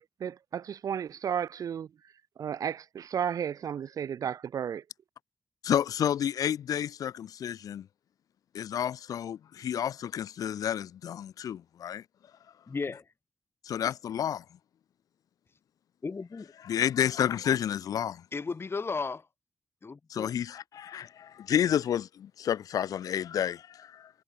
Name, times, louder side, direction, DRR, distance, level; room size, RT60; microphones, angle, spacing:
voice 1, 0.0-1.9 2.4-4.8, right 8 dB, 80° right, 0.9 m, -33 dB
voice 2, 5.6-7.9 8.5-12.0 13.6-14.4 16.6-18.2 20.1-24.1, left 9 dB, 90° left, 1.3 m, -30 dB
voice 3, 12.7-13.0 16.0-16.5 18.3-19.2 19.8-20.3, left 4 dB, 40° left, 0.9 m, -34 dB
cardioid pair, 60°, 6 cm